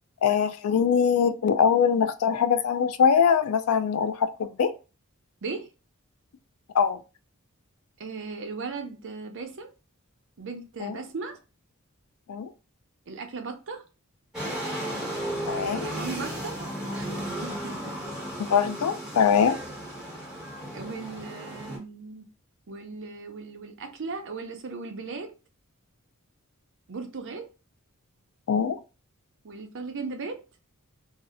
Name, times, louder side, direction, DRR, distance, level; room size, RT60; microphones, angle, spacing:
voice 1, 0.2-4.7 6.7-7.0 10.8-11.0 12.3-12.5 15.5-15.9 18.5-19.6 28.5-28.8, left 7 dB, 85° left, 0.4 m, -22 dB
voice 2, 8.0-9.7 10.4-11.4 13.1-13.8 15.7-16.6 16.9-17.8 19.5-19.6 20.7-22.3 22.7-25.3 26.9-27.5 29.4-30.4, right 4 dB, 60° right, 0.6 m, -37 dB
sound 1, 14.3-21.8, right 1 dB, 5° right, 1.1 m, -34 dB
2.7 x 2.1 x 3.5 m
head